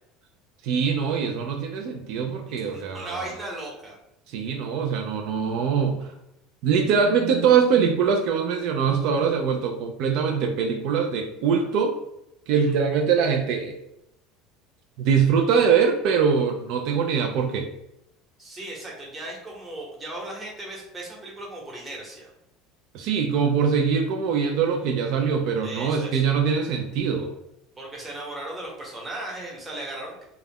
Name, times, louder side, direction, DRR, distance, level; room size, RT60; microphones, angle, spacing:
voice 1, 0.6-3.3 4.3-6.1 6.6-11.9 12.5-13.7 15.0-17.7 22.9-27.3, right 6 dB, 65° right, 3 dB, 0.3 m, -23 dB
voice 2, 2.5-3.9 12.7-12.8 18.4-22.3 25.6-26.2 27.8-30.2, right 2 dB, 20° right, -3 dB, 0.9 m, -37 dB
2.3 x 2.1 x 3.4 m, 0.84 s
supercardioid pair, 120°, 0 cm